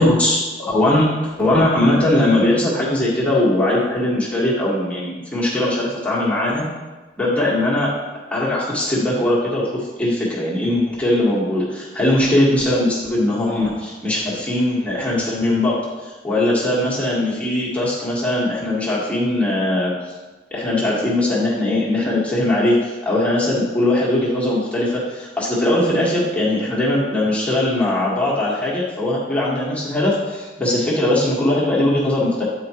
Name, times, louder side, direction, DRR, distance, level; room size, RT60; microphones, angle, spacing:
voice 1, 0.0-6.7 7.2-7.9 8.3-9.6 10.0-19.9 20.5-32.4, left 1 dB, 5° left, -7 dB, 1.5 m, -20 dB
8.7 x 4.7 x 2.9 m, 1.2 s
head